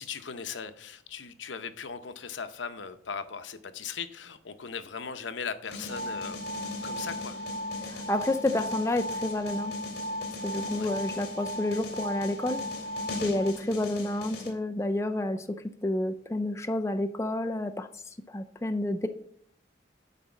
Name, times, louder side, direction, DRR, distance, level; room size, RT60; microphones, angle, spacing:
voice 1, 0.0-6.4 6.8-7.4 10.7-10.9 13.3-13.5, left 6 dB, 85° left, 11 dB, 0.8 m, -38 dB
sound 1, 5.6-14.5, left 2 dB, 55° left, 2.5 m, -40 dB
sound 2, 5.9-13.5, left 1 dB, 60° right, 0.7 m, -37 dB
voice 2, 7.8-9.7 10.4-12.6 13.2-15.4 15.8-17.9 18.3-19.1, left 1 dB, 15° left, 7 dB, 0.4 m, -29 dB
10.0 x 4.2 x 7.0 m, 0.62 s
head